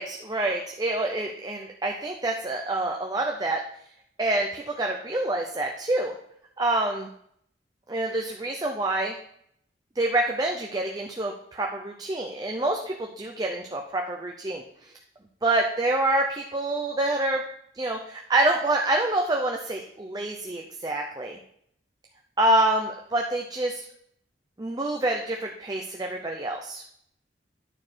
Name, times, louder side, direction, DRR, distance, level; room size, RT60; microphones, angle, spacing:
voice 1, 0.0-3.6 4.2-6.1 6.6-7.1 7.9-9.2 10.0-14.6 15.4-17.4 17.7-21.4 22.4-23.8 24.6-26.8, right 2 dB, 20° right, 1 dB, 0.5 m, -27 dB
11.0 x 4.6 x 4.4 m, 0.70 s
head